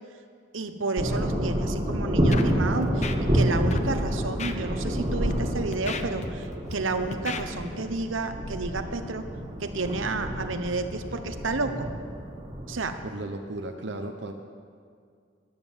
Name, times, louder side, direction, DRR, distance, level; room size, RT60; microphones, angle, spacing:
voice 1, 0.5-3.1 3.3-9.3 9.6-11.9 12.7-12.9, right 3 dB, 80° right, 8 dB, 1.0 m, -31 dB
sound 1, 1.0-13.0, equal, 25° right, 2.2 m, -28 dB
Scratching (performance technique), 2.3-2.5 2.8-3.4 3.7-3.9 4.4-4.5 5.1-5.3 5.7-6.7 7.1-7.4, left 4 dB, 35° left, 0.7 m, -34 dB
voice 2, 13.0-14.3, right 2 dB, 60° right, 5 dB, 0.8 m, -35 dB
14.0 x 10.5 x 7.3 m, 2.2 s
head